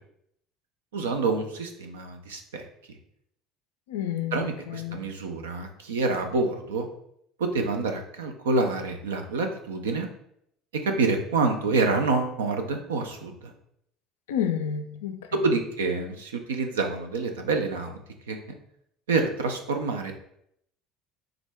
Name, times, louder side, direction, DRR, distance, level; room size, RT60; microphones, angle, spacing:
voice 1, 0.9-2.6 4.3-6.9 7.4-10.1 10.7-13.5 15.3-18.0 18.3-18.6 19.1-20.1, right 3 dB, 90° right, 5 dB, 0.4 m, -27 dB
voice 2, 3.9-5.0 14.3-15.3, left 9 dB, 85° left, 7 dB, 0.3 m, -30 dB
3.6 x 2.1 x 3.4 m, 0.72 s
hypercardioid pair, 75°, 0 cm